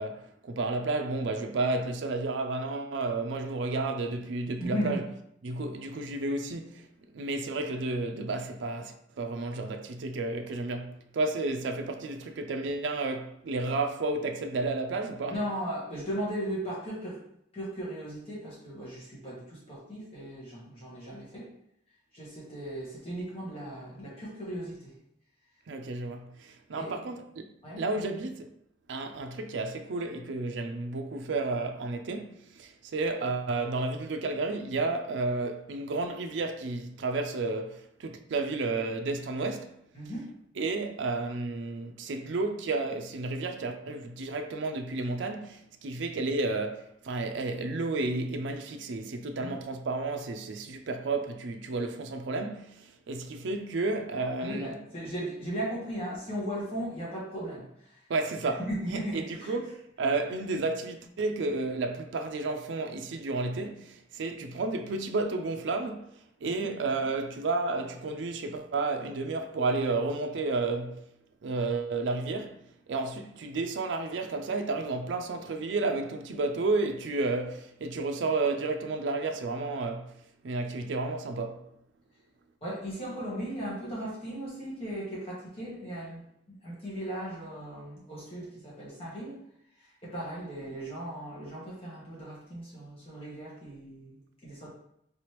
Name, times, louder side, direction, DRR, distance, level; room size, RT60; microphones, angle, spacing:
voice 1, 0.0-5.0 5.4-6.9 7.1-15.4 25.7-27.4 27.8-28.5 28.9-39.8 40.6-54.8 58.1-66.1 66.4-71.1 71.4-80.1 80.4-81.6, right 3 dB, 70° right, 0.4 m, -32 dB
voice 2, 4.6-5.0 15.3-17.2 17.5-21.5 22.1-24.9 26.8-26.9 27.6-27.8 39.9-40.3 49.4-49.5 54.4-58.0 58.7-59.6 66.4-66.7 82.6-89.4 89.8-94.7, equal, 30° left, 1.4 m, -37 dB
4.0 x 3.3 x 3.0 m
head